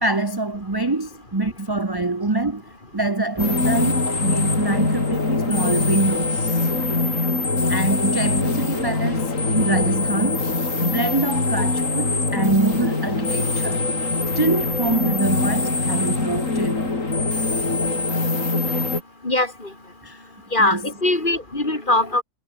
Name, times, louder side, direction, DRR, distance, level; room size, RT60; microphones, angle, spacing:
voice 1, 0.0-2.6 2.9-6.7 7.7-10.5 10.8-13.8 14.3-17.0 20.0-20.2 20.6-20.8, right 2 dB, 15° right, 1.1 m, -24 dB
sound 1, 3.4-19.0, left 3 dB, 55° left, 4.0 m, -23 dB
voice 2, 20.5-22.2, left 2 dB, 30° left, 3.8 m, -21 dB
omnidirectional pair, 1.6 m